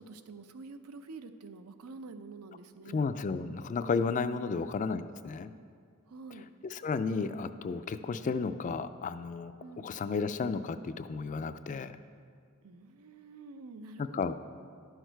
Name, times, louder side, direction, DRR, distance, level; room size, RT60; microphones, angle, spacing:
voice 1, 0.0-3.1 4.3-4.8 6.1-6.5 9.6-9.9 12.6-14.3, right 3 dB, 85° right, 10 dB, 0.6 m, -48 dB
voice 2, 2.9-5.5 6.6-9.5 9.8-11.9 14.0-14.3, left 4 dB, 35° left, 12 dB, 0.3 m, -33 dB
11.5 x 6.4 x 4.5 m, 2.2 s
head